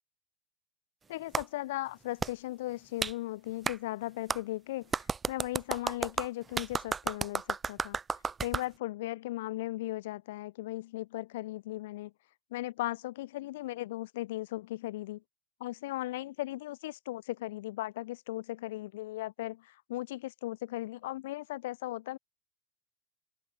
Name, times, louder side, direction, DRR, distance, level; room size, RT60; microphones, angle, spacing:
voice 1, 1.1-8.0 8.4-12.1 12.5-15.2 15.6-22.2, left 17 dB, 70° left, 2.6 m, -37 dB
Clapping, 1.3-1.5 2.2-2.3 3.0-3.1 3.7-3.8 4.3-4.4 4.9-8.7, right 5 dB, 15° right, 0.3 m, -32 dB
open air
supercardioid pair, 125°, 0 cm